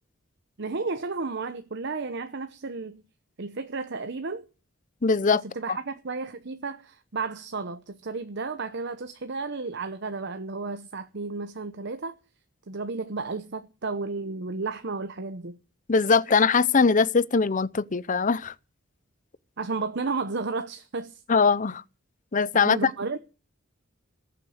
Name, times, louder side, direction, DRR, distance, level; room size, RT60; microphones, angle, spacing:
voice 1, 0.6-3.0 3.4-4.5 5.4-12.2 12.7-15.6 19.6-21.2 22.5-23.2, right 4 dB, 55° right, 0.9 m, -33 dB
voice 2, 5.0-5.4 5.7-5.8 15.9-18.5 21.3-21.8 22.3-22.8, left 5 dB, 40° left, 0.6 m, -21 dB
18.0 x 7.4 x 7.9 m
head